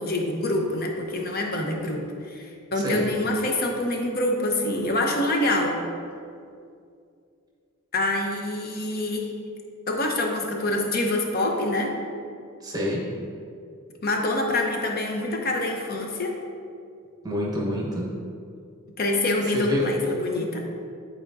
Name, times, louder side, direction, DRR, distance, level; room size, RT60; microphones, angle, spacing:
voice 1, 0.0-5.8 7.9-9.3 9.9-12.0 14.0-16.3 19.0-20.7, left 1 dB, 45° left, 2 dB, 0.8 m, -26 dB
voice 2, 2.8-3.1 12.6-13.1 17.2-18.1 19.5-19.9, equal, 20° right, -3 dB, 1.0 m, -28 dB
10.5 x 4.3 x 2.6 m, 2.4 s
head